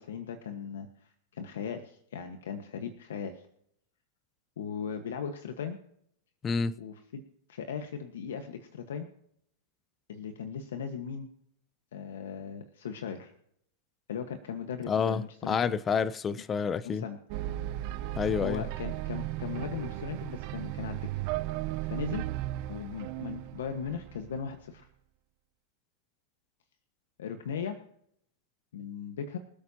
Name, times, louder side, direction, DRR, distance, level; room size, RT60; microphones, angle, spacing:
voice 1, 0.0-3.4 4.6-5.8 6.8-7.2 7.5-9.1 10.1-11.3 11.9-13.3 14.1-15.8 16.8-17.2 18.4-21.1 21.8-22.3 22.7-24.9 27.2-27.8 28.7-29.4, left 7 dB, 85° left, 1.4 m, -38 dB
voice 2, 6.4-6.7 14.9-17.0 18.2-18.6, left 6 dB, 20° left, 0.5 m, -29 dB
sound 1, 17.3-24.6, right 15 dB, 45° right, 0.9 m, -36 dB
25.0 x 8.6 x 2.9 m
supercardioid pair, 140°, 0 cm